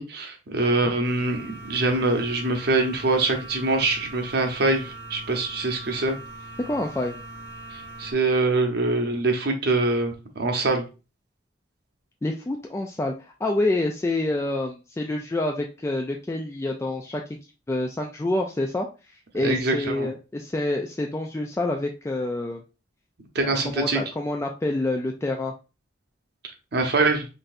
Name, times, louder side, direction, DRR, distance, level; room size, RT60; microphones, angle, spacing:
voice 1, 0.0-6.2 7.7-10.9 19.4-20.1 23.3-24.0 26.7-27.3, right 2 dB, 60° right, 4 dB, 0.9 m, -24 dB
sound 1, 1.0-8.1, right 2 dB, 85° left, 1.0 m, -41 dB
voice 2, 6.6-7.2 12.2-17.2 17.7-22.6 23.4-25.5, left 2 dB, 15° left, 1 dB, 0.3 m, -27 dB
4.0 x 3.3 x 2.5 m, 0.31 s
head